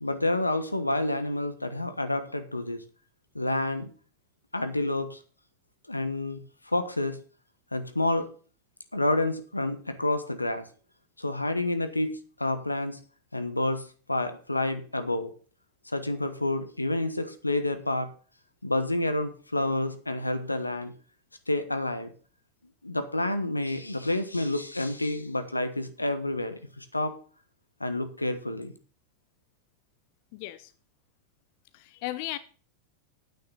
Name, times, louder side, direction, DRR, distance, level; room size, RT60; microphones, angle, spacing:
voice 1, 0.0-2.8 3.3-3.9 4.5-5.2 5.9-6.4 6.7-7.2 7.7-8.3 8.9-10.7 11.2-13.0 13.3-15.3 15.9-18.1 18.6-20.9 21.5-22.1 22.8-27.2 27.8-28.7, left 2 dB, 85° left, 1.2 m, -29 dB
voice 2, 30.3-30.7 31.7-32.4, left 16 dB, 45° left, 0.7 m, -36 dB
9.3 x 9.2 x 5.5 m
figure-of-eight pair, 90°, 0 cm